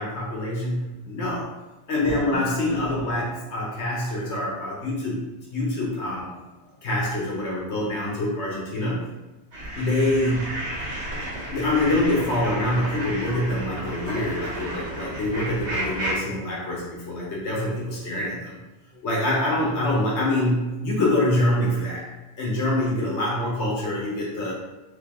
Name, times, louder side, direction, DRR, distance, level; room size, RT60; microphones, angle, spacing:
voice 1, 0.0-1.5 1.9-6.4 6.8-9.1 9.7-10.5 11.5-18.6 19.0-22.1 22.4-24.5, left 1 dB, 75° left, -4 dB, 1.4 m, -25 dB
sound 1, 9.5-16.1, right 1 dB, 75° right, 1.6 m, -32 dB
3.8 x 3.4 x 3.7 m, 1.1 s
omnidirectional pair, 1.1 m